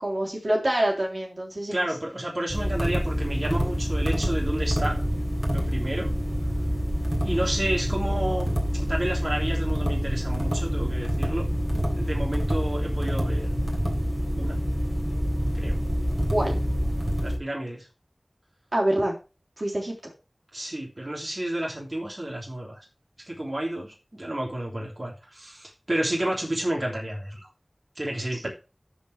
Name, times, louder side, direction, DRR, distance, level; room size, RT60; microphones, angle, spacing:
voice 1, 0.0-1.8 16.3-16.6 18.7-19.2 19.6-20.0, right 1 dB, 65° right, -1 dB, 3.5 m, -26 dB
voice 2, 1.7-5.0 5.5-6.1 7.2-11.5 12.0-13.5 14.3-14.6 15.5-15.7 17.2-17.9 20.5-22.8 23.3-27.5 27.9-28.5, right 1 dB, 50° right, -2 dB, 3.3 m, -31 dB
sound 1, 2.5-17.4, equal, 25° right, 3.5 m, -26 dB
13.5 x 5.1 x 4.8 m, 0.32 s
wide cardioid pair, 40°, 0 cm